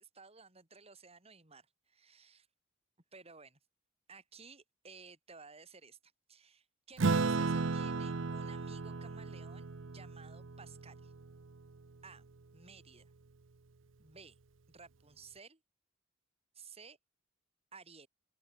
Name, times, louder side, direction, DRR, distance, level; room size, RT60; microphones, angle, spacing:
voice 1, 0.0-2.5 3.1-3.6 4.1-6.0 6.3-11.1 12.0-13.1 14.0-14.4 14.7-15.6 16.5-17.0 17.7-18.1, right 4 dB, 30° right, 4.4 m, -56 dB
Acoustic guitar / Strum, 7.0-11.8, right 4 dB, 80° right, 0.7 m, -35 dB
open air
head